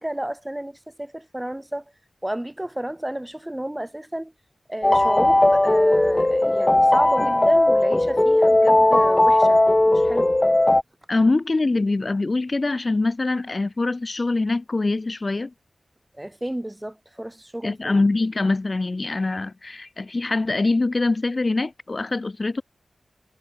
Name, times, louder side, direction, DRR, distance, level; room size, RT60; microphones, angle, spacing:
voice 1, 0.0-1.8 2.2-4.3 4.7-10.4 16.2-18.0, right 1 dB, 15° right, 4.3 m, -31 dB
sound 1, 4.8-10.8, left 1 dB, 25° left, 0.5 m, -17 dB
voice 2, 11.1-15.5 17.6-22.6, left 3 dB, 45° left, 1.5 m, -23 dB
cardioid pair, 50°, 0 cm